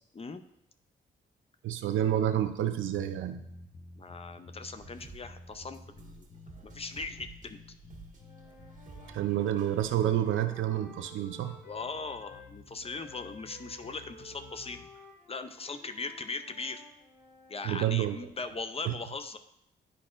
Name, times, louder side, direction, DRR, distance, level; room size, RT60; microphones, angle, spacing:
voice 1, 1.6-3.4 9.1-11.6 17.6-18.2 18.8-18.9, right 11 dB, 90° right, 8 dB, 0.5 m, -29 dB
sound 1, 2.9-14.9, left 2 dB, 50° left, 0.9 m, -52 dB
voice 2, 4.0-6.3 6.6-7.6 11.6-14.8 15.3-16.8 17.5-19.4, left 4 dB, 30° left, 9 dB, 0.5 m, -39 dB
sound 2, 4.7-10.0, right 4 dB, 40° right, 1.6 m, -53 dB
Wind instrument woodwind instrument, 8.1-12.5 12.8-17.6, left 2 dB, 70° left, 2.2 m, -54 dB
10.5 x 4.2 x 2.5 m, 0.78 s
cardioid pair, 70°, 20 cm